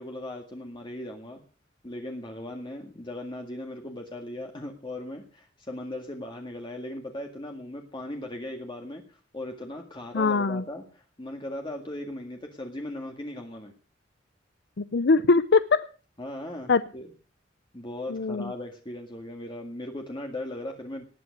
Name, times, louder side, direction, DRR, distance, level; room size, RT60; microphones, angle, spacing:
voice 1, 0.0-1.4 1.8-13.7 16.2-17.1 17.7-21.0, left 1 dB, 25° left, 2 dB, 1.9 m, -38 dB
voice 2, 10.1-10.6 14.8-15.9 16.7-16.8 18.1-18.5, left 4 dB, 65° left, 13 dB, 0.6 m, -22 dB
19.0 x 9.1 x 6.4 m, 0.39 s
head